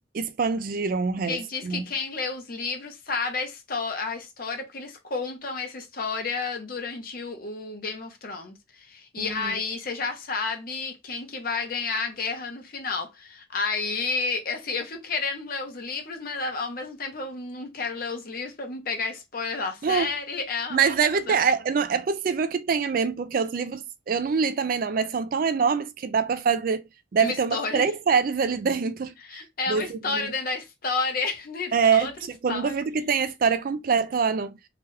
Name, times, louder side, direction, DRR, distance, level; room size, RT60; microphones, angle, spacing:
voice 1, 0.1-1.8 9.2-9.5 19.8-20.1 20.7-26.8 27.1-29.4 29.7-30.3 31.7-34.5, right 6 dB, 45° right, 0.3 m, -25 dB
voice 2, 1.3-21.4 27.2-27.9 29.2-32.1 32.5-32.7, left 4 dB, 50° left, 0.8 m, -31 dB
2.9 x 2.3 x 3.1 m
head